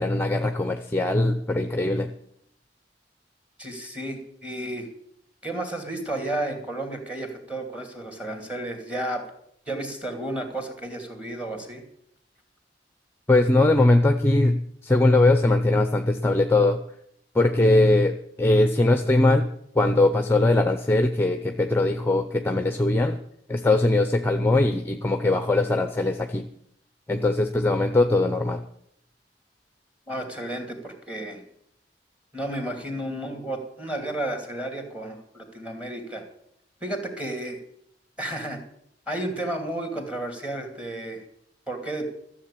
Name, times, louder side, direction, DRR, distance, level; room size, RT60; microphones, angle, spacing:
voice 1, 0.0-2.1 13.3-16.8 17.3-19.5 19.7-23.2 23.5-26.4 27.1-28.6, left 2 dB, 15° left, 8 dB, 0.7 m, -21 dB
voice 2, 3.6-4.9 5.4-9.2 9.7-11.8 30.1-31.4 32.3-36.2 36.8-37.6 38.2-38.6 39.1-41.2 41.7-42.1, right 1 dB, 5° right, 5 dB, 2.6 m, -32 dB
13.5 x 7.5 x 8.5 m, 0.71 s
head